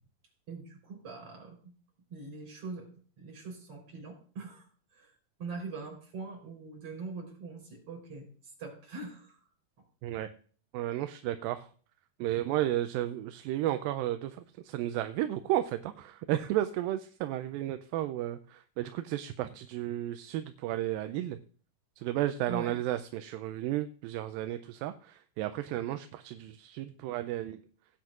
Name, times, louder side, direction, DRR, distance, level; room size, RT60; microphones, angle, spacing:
voice 1, 0.5-1.7 2.1-2.9 3.2-9.5 22.5-22.8, right 4 dB, 40° right, 1 dB, 4.7 m, -43 dB
voice 2, 10.7-11.7 12.2-21.4 22.0-27.6, right 13 dB, 80° right, 9 dB, 2.3 m, -33 dB
17.5 x 9.3 x 2.4 m, 0.43 s
omnidirectional pair, 4.2 m